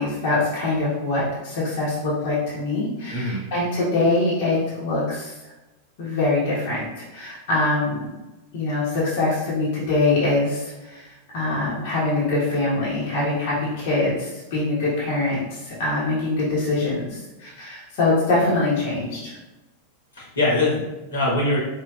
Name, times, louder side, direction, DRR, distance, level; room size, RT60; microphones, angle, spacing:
voice 1, 0.0-5.5 6.0-6.8 7.1-8.1 8.5-19.4, left 2 dB, 50° left, -8 dB, 1.3 m, -24 dB
voice 2, 3.1-3.4 20.1-21.6, left 2 dB, 70° left, -5 dB, 1.5 m, -23 dB
4.7 x 3.1 x 2.4 m, 1.1 s
figure-of-eight pair, 90°, 0 cm